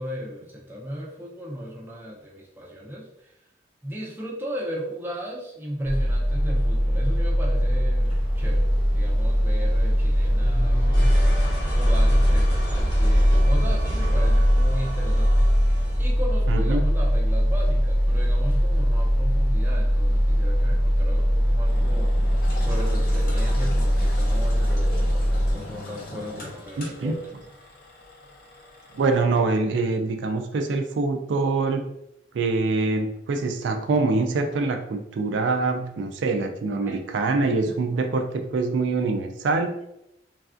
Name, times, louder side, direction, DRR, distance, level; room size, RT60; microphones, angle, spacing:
voice 1, 0.0-3.4 3.8-8.7 8.9-11.3 11.7-22.3 22.6-27.3 36.8-37.0, equal, 10° right, -3 dB, 0.5 m, -36 dB
sound 1, 5.8-25.5, equal, 25° left, 0.9 m, -21 dB
sound 2, 8.3-16.2, equal, 75° left, 0.9 m, -25 dB
voice 2, 16.5-16.8 26.8-27.1 28.9-31.8 32.3-39.8, right 3 dB, 80° right, 5 dB, 0.3 m, -24 dB
Engine, 21.6-29.2, left 2 dB, 50° left, 0.7 m, -40 dB
3.2 x 2.4 x 2.4 m, 0.85 s
head